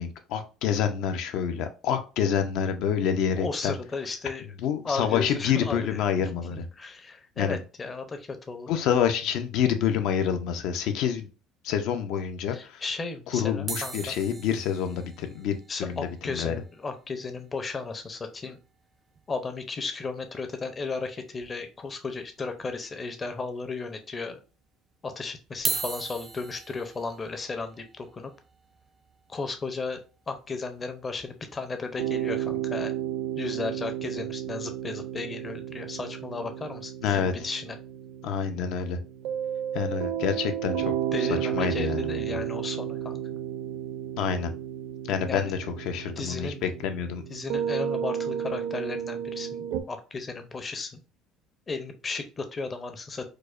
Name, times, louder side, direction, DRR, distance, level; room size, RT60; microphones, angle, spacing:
voice 1, 0.0-3.7 4.6-6.7 7.4-7.6 8.7-11.3 11.6-12.8 13.3-16.5 37.0-37.5 38.2-39.0 39.7-40.9 41.5-42.4 44.2-44.5 45.1-47.2, left 8 dB, 65° left, 8 dB, 0.5 m, -27 dB
voice 2, 3.4-4.5 4.8-6.0 6.5-8.7 12.5-14.1 15.7-18.6 19.3-24.4 25.0-28.3 29.3-30.0 30.3-32.9 33.4-37.8 41.1-43.2 45.3-45.5 46.2-46.6 47.3-51.0 51.7-53.3, left 4 dB, 25° left, 7 dB, 0.6 m, -35 dB
sound 1, 13.7-18.0 18.3-18.4 18.6-18.8 19.2-19.3 20.6-20.7 21.4-21.9 22.4-22.5 23.4-23.5 25.5-31.6 32.1-32.4, right 4 dB, 25° right, 0.3 m, -39 dB
sound 2, 32.0-49.8, right 10 dB, 80° right, 0.5 m, -32 dB
4.7 x 2.1 x 2.4 m, 0.34 s
cardioid pair, 140°, 0 cm